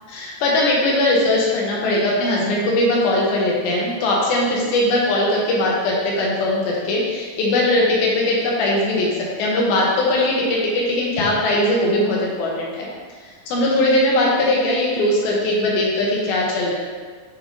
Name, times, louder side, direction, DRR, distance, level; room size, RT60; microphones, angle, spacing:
voice 1, 0.1-9.1 9.4-12.9 13.5-16.7, left 1 dB, 75° left, -4 dB, 2.8 m, -20 dB
7.8 x 3.4 x 3.6 m, 1.5 s
omnidirectional pair, 4.4 m